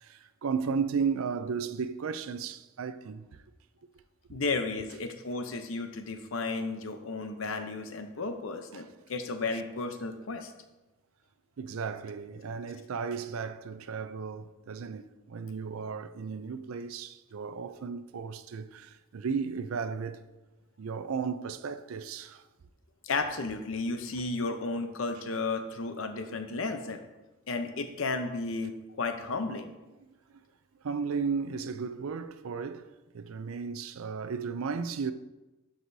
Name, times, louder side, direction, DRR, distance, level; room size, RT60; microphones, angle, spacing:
voice 1, 0.0-3.4 8.7-8.9 11.6-20.2 20.8-22.4 24.1-24.2 30.8-32.9 33.1-35.1, right 5 dB, 85° right, 0.4 m, -34 dB
voice 2, 4.3-10.5 23.0-27.0 27.5-29.7, left 3 dB, 70° left, 0.7 m, -33 dB
12.0 x 4.9 x 2.7 m
head